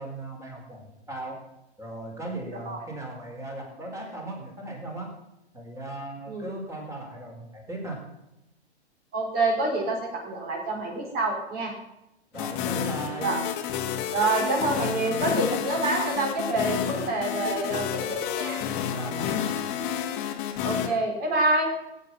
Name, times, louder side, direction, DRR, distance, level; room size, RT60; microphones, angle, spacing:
voice 1, 0.0-1.4 1.8-5.1 5.5-8.0 12.3-13.3 18.9-19.7, right 1 dB, 10° right, 0 dB, 4.4 m, -37 dB
voice 2, 9.1-11.7 13.2-13.4 14.1-18.6 20.6-21.7, right 2 dB, 25° right, 1 dB, 4.8 m, -27 dB
sound 1, 12.3-20.9, left 9 dB, 35° left, 2.0 m, -30 dB
16.5 x 9.3 x 6.1 m, 0.89 s
hypercardioid pair, 120°, 34 cm